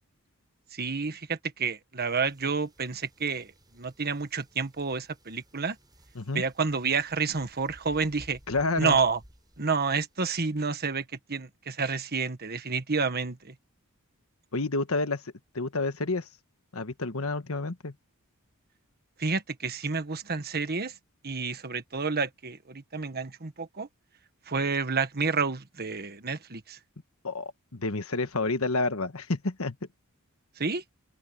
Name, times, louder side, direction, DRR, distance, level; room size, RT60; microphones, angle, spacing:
voice 1, 0.7-5.8 6.3-8.4 8.8-9.2 9.6-13.5 19.2-21.0 21.2-23.9 24.5-26.8 30.6-30.8, right 4 dB, 45° right, 1.5 m, -29 dB
sound 1, 2.0-10.3, equal, 20° right, 6.0 m, -56 dB
voice 2, 8.5-9.0 14.5-16.3 16.7-17.9 27.2-29.8, left 3 dB, 65° left, 1.5 m, -29 dB
open air
head